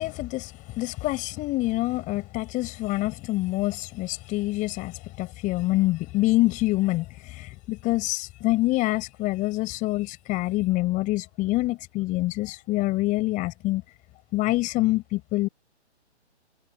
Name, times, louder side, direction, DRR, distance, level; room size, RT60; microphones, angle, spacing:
voice 1, 0.0-13.8 14.3-15.5, left 19 dB, 20° left, 6.8 m, -26 dB
figure-of-eight pair, 135°, 34 cm